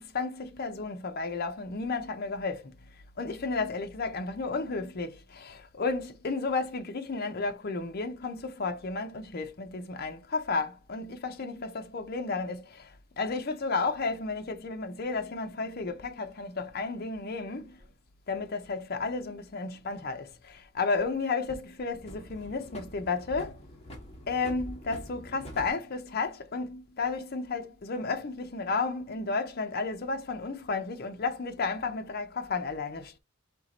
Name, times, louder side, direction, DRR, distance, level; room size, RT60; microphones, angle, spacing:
voice 1, 0.0-2.7 3.2-17.8 18.3-23.6 24.3-33.2, left 4 dB, 45° left, 0.6 m, -33 dB
sound 1, 16.6-17.9 20.2-21.1 21.5-25.7, equal, 30° left, 1.2 m, -46 dB
4.5 x 2.9 x 4.0 m
head